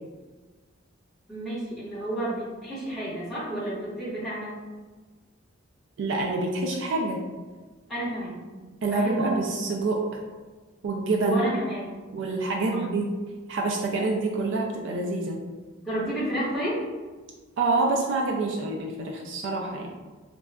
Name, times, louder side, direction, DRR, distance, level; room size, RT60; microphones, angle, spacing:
voice 1, 1.3-4.5 7.9-9.3 11.3-11.9 12.7-12.8 15.8-16.8, right 1 dB, ahead, -11 dB, 1.2 m, -31 dB
voice 2, 6.0-7.2 8.8-10.2 10.8-11.5 12.1-13.1 13.5-15.4 17.6-19.9, right 3 dB, 65° right, 0 dB, 0.3 m, -27 dB
3.7 x 2.2 x 2.2 m, 1.3 s
head